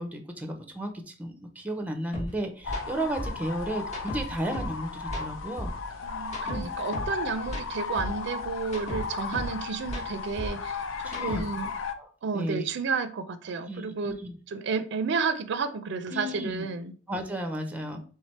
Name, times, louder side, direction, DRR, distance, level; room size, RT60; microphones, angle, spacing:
voice 1, 0.0-5.7 6.4-6.7 11.0-11.4 12.0-12.6 13.7-14.3 16.1-16.7 17.1-18.0, right 1 dB, 10° right, 0.5 m, -34 dB
sound 1, 2.1-2.3 2.6-2.8 3.2-4.8 5.0-7.2 7.4-9.6 9.8-11.7, equal, 35° left, 1.1 m, -36 dB
sound 2, 2.6-11.9, left 5 dB, 85° left, 0.5 m, -36 dB
voice 2, 6.0-11.7 12.2-14.2 14.5-16.9, right 5 dB, 65° right, 0.4 m, -31 dB
3.5 x 3.2 x 4.1 m
head